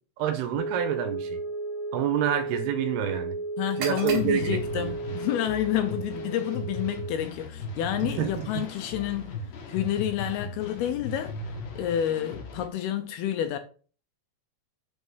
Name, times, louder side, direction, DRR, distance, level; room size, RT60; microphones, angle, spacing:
voice 1, 0.2-1.4 1.9-3.4 3.8-4.9 8.0-8.7, right 10 dB, 80° right, 2.7 m, -28 dB
sound 1, 0.5-7.1, right 2 dB, 25° left, 1.7 m, -34 dB
voice 2, 3.6-9.3 9.7-11.3 11.8-13.6, left 11 dB, 80° left, 2.4 m, -29 dB
sound 2, 3.6-11.4, right 6 dB, 60° right, 2.3 m, -45 dB
sound 3, 4.1-12.7, left 3 dB, 60° left, 2.5 m, -38 dB
6.5 x 5.7 x 5.5 m
omnidirectional pair, 4.9 m